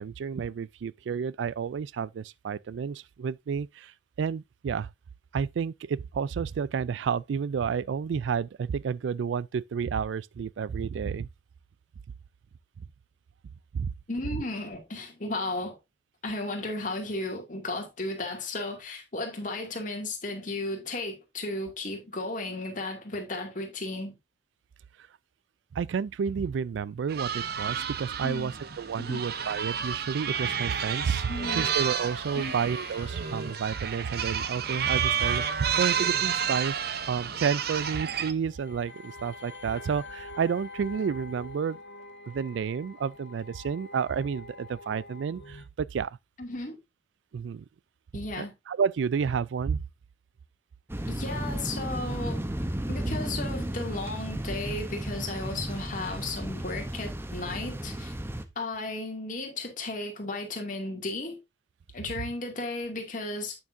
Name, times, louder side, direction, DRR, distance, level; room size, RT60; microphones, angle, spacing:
voice 1, 0.0-4.9 5.3-11.3 13.7-13.9 25.7-36.8 37.1-41.8 42.3-46.2 47.3-47.6 48.4-49.8, right 6 dB, 85° right, 0.4 m, -30 dB
voice 2, 14.1-15.8 16.2-24.1 28.2-28.5 29.0-29.3 31.3-31.7 32.3-32.5 46.4-46.8 48.1-48.5 51.1-52.4 52.9-58.1 58.6-61.4 61.9-63.6, left 2 dB, 45° left, 2.4 m, -34 dB
sound 1, 27.1-38.3, right 7 dB, 60° right, 0.8 m, -31 dB
sound 2, 29.6-45.7, left 2 dB, 85° left, 1.6 m, -48 dB
sound 3, 50.9-58.4, right 1 dB, 15° right, 0.7 m, -34 dB
8.9 x 7.1 x 2.6 m
head